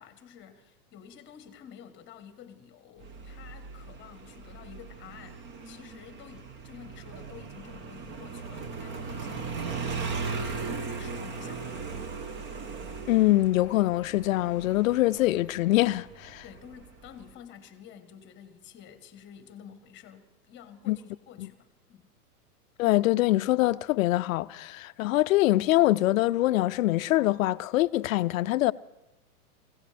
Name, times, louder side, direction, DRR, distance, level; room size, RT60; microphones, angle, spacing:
voice 1, 0.0-12.1 16.4-22.1, left 9 dB, 25° left, 1.3 m, -50 dB
Motorcycle, 3.0-17.3, right 4 dB, 25° right, 1.1 m, -38 dB
voice 2, 13.1-16.4 20.9-21.0 21.4-21.5 22.8-28.7, left 16 dB, 60° left, 0.6 m, -24 dB
24.0 x 16.5 x 3.4 m
hypercardioid pair, 130°, 46 cm